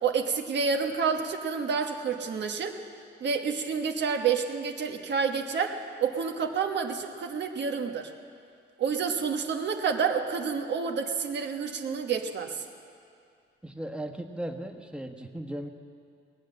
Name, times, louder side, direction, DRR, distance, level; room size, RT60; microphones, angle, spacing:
voice 1, 0.0-2.8 3.2-8.1 8.8-12.6, right 6 dB, 60° right, 4 dB, 1.3 m, -29 dB
voice 2, 13.6-15.7, right 1 dB, 5° right, 4 dB, 1.3 m, -37 dB
19.5 x 8.5 x 7.7 m, 2.3 s
cardioid pair, 90°, 20 cm